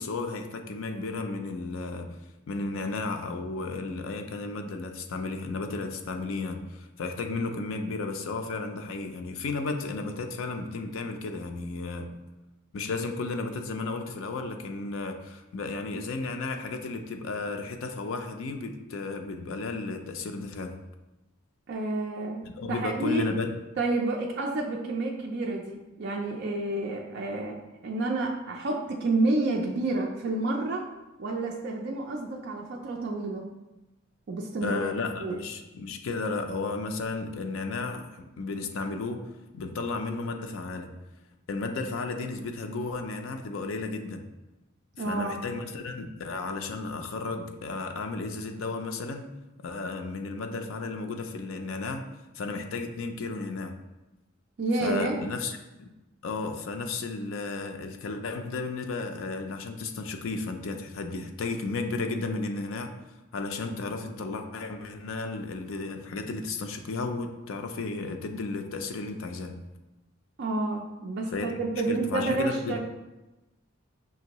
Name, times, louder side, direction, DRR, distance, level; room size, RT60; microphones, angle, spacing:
voice 1, 0.0-2.1 2.5-12.1 12.7-20.8 22.4-23.5 34.6-39.2 39.5-40.9 41.5-44.2 45.0-49.3 49.6-52.0 52.3-53.7 54.8-55.9 56.2-62.9 63.3-69.5 71.3-71.5 71.9-72.8, left 3 dB, 65° left, 5 dB, 0.4 m, -33 dB
voice 2, 21.7-23.3 23.8-27.6 27.8-30.9 31.2-33.5 34.3-34.8 35.2-35.4 45.0-45.4 54.6-55.2 70.4-72.8, right 2 dB, 50° right, 0 dB, 0.4 m, -29 dB
5.7 x 2.6 x 2.9 m, 1.0 s
head